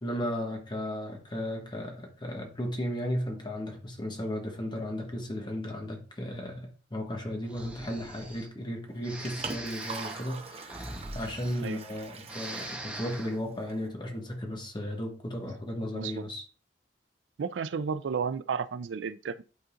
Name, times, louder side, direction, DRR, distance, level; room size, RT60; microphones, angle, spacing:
voice 1, 0.0-16.4, equal, 25° left, 1.3 m, -35 dB
Breathing, 7.5-8.5 9.0-12.0 12.2-13.4, right 1 dB, 5° right, 0.9 m, -42 dB
Liquid, 8.9-13.9, right 5 dB, 35° right, 0.7 m, -44 dB
voice 2, 15.9-16.3 17.4-19.4, right 6 dB, 80° right, 0.4 m, -32 dB
11.5 x 3.8 x 2.5 m
head